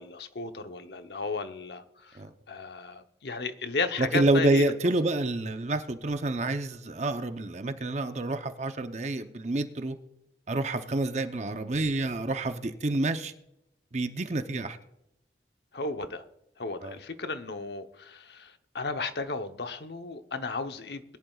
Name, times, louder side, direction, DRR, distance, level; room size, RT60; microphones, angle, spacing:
voice 1, 0.0-2.2 2.5-4.7 15.7-16.2 16.6-21.2, left 3 dB, 70° left, 0.9 m, -34 dB
voice 2, 4.0-10.0 10.5-13.3 13.9-14.8 16.8-17.0, right 2 dB, 40° right, 0.7 m, -28 dB
21.0 x 11.0 x 2.4 m
head